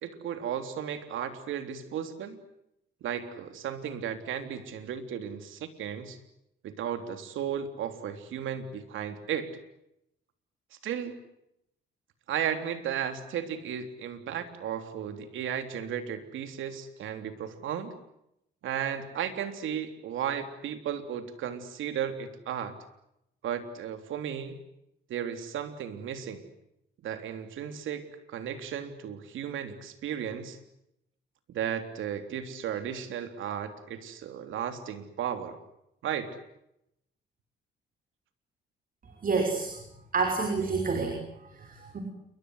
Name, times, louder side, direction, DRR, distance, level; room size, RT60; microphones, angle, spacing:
voice 1, 0.0-2.4 3.0-6.2 6.6-9.5 10.8-11.2 12.3-17.9 18.6-22.7 23.4-24.6 25.1-26.5 27.0-30.6 31.5-35.6 36.0-36.4, right 9 dB, 80° right, 8 dB, 3.4 m, -34 dB
voice 2, 39.2-39.8 40.1-42.0, right 4 dB, 45° right, 4 dB, 6.1 m, -29 dB
29.0 x 24.5 x 8.1 m, 0.81 s
cardioid pair, 90°, 20 cm